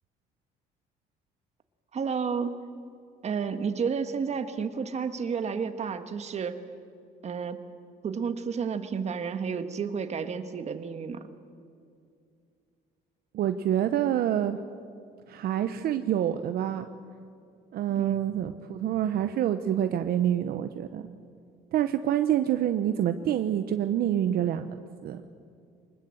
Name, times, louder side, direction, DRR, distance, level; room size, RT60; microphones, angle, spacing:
voice 1, 1.9-2.6 3.2-6.6 7.2-7.6 8.0-11.3 17.9-18.2, right 6 dB, 40° right, 9 dB, 1.6 m, -31 dB
voice 2, 13.3-14.6 15.3-16.9 17.7-21.0 21.7-25.2, right 10 dB, 65° right, 9 dB, 0.9 m, -27 dB
23.5 x 20.0 x 7.9 m, 2.4 s
cardioid pair, 110°, 17 cm